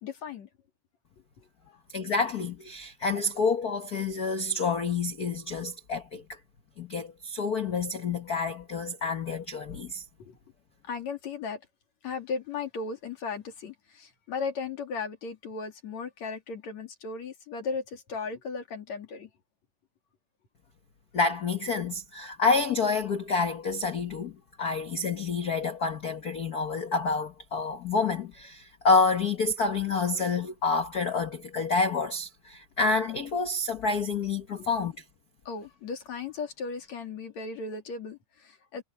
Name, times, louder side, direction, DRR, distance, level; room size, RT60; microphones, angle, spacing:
voice 1, 0.0-0.5 10.2-10.4 10.9-11.6 12.0-19.3 34.6-34.7 35.5-38.8, left 4 dB, 65° left, 3.9 m, -36 dB
voice 2, 1.9-6.4 6.8-10.0 21.1-24.3 24.6-34.9, left 4 dB, 80° left, 0.8 m, -28 dB
omnidirectional pair, 3.5 m